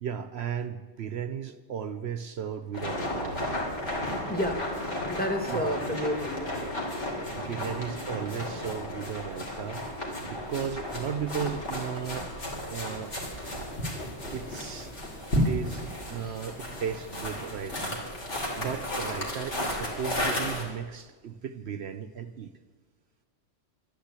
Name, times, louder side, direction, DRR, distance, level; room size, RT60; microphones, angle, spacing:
voice 1, 0.0-3.4 5.5-5.8 7.3-9.9 10.2-12.4 12.7-13.1 14.3-14.9 15.4-18.0 18.6-22.5, right 7 dB, 65° right, 11 dB, 0.9 m, -35 dB
sound 1, 2.7-20.6, left 1 dB, 75° left, 3.4 m, -34 dB
voice 2, 4.3-4.6 5.1-6.5 7.0-7.1 16.2-16.4, left 1 dB, 10° left, 6 dB, 1.5 m, -31 dB
sound 2, 13.0-19.3, equal, 60° left, 2.7 m, -35 dB
12.5 x 12.0 x 8.2 m, 1.4 s
omnidirectional pair, 1.2 m